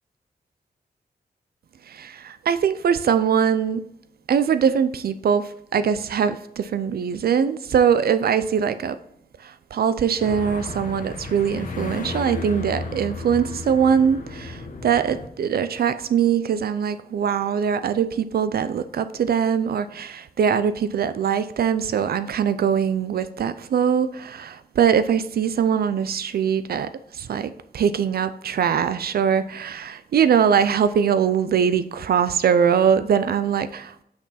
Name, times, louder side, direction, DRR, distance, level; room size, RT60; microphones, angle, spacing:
voice 1, 1.9-3.8 4.3-9.0 9.7-34.0, right 7 dB, 70° right, 0.4 m, -22 dB
sound 1, 10.2-15.3, left 3 dB, 55° left, 0.9 m, -34 dB
6.1 x 6.1 x 4.1 m
wide cardioid pair, 140°, 16 cm